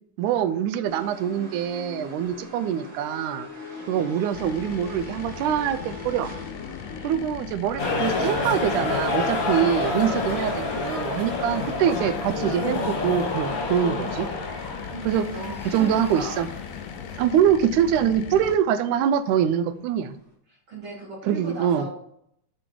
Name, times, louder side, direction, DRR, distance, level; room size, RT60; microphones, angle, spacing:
voice 1, 0.2-3.5 3.9-6.3 7.0-14.3 15.1-15.3 15.7-16.5 17.2-20.2 21.3-21.9, right 9 dB, 80° right, 12 dB, 2.0 m, -24 dB
sound 1, 0.8-20.3, left 3 dB, 20° right, 2.9 m, -45 dB
voice 2, 3.7-4.1 6.8-7.2 11.4-11.7 14.5-16.5 20.5-21.9, right 1 dB, 45° right, -5 dB, 2.6 m, -39 dB
sound 2, 4.3-18.6, left 9 dB, 80° left, 1.9 m, -39 dB
sound 3, 7.8-17.4, left 3 dB, 40° left, 1.4 m, -28 dB
7.5 x 5.9 x 4.6 m, 0.70 s
omnidirectional pair, 3.7 m